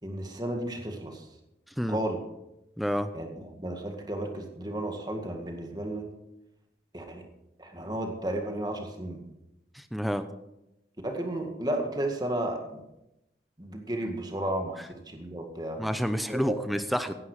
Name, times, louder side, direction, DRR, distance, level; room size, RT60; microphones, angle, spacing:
voice 1, 0.0-1.3 1.9-2.2 3.1-6.1 6.9-7.2 7.6-9.2 11.0-12.8 13.6-14.8 15.1-15.8 16.3-16.6, right 1 dB, 25° right, 3 dB, 2.0 m, -33 dB
voice 2, 2.8-3.1 9.7-10.3 15.8-17.1, equal, ahead, 10 dB, 0.8 m, -29 dB
16.0 x 11.0 x 5.0 m, 0.89 s
head